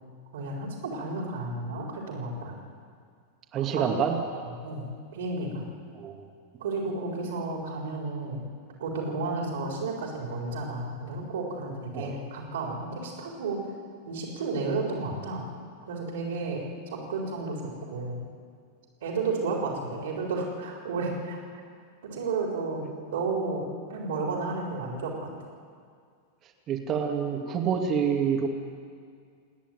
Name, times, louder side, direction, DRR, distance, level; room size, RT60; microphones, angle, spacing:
voice 1, 0.3-2.6 3.6-3.8 4.6-4.9 5.1-5.7 6.6-8.4 8.8-13.6 14.0-15.5 15.9-18.2 19.0-21.4 22.0-25.3, right 3 dB, 60° right, 0 dB, 3.8 m, -32 dB
voice 2, 3.5-4.2 5.9-6.3 11.9-12.1 26.7-28.5, right 7 dB, 30° right, 2 dB, 2.3 m, -27 dB
29.0 x 10.0 x 9.2 m, 2.2 s
figure-of-eight pair, 90°, 0 cm